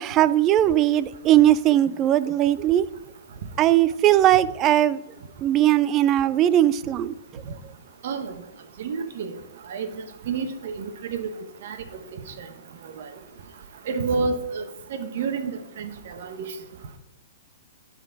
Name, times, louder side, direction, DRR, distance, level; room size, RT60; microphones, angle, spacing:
voice 1, 0.0-2.9 3.6-5.0 5.4-7.1, right 12 dB, 30° right, 17 dB, 0.3 m, -19 dB
voice 2, 8.0-8.3 8.8-9.3 9.7-9.9 10.3-11.3 11.6-11.8 12.4-12.5 13.9-14.7 14.9-15.5 15.8-16.5, right 5 dB, 60° right, 8 dB, 0.9 m, -29 dB
10.0 x 3.9 x 4.7 m, 0.92 s
hypercardioid pair, 135°, 0 cm